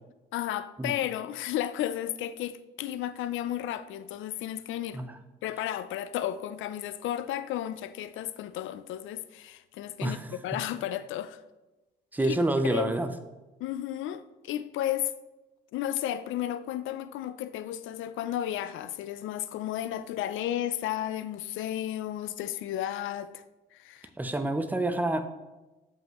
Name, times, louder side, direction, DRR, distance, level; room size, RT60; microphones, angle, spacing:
voice 1, 0.3-5.0 5.4-11.4 12.2-12.4 12.7-12.9 13.6-15.1 15.7-23.4 23.7-24.1, left 12 dB, 80° left, 0.4 m, -33 dB
voice 2, 10.0-10.4 12.1-13.1 24.2-25.3, right 2 dB, 10° right, 0.6 m, -28 dB
7.6 x 5.4 x 3.0 m
cardioid pair, 90°, 20 cm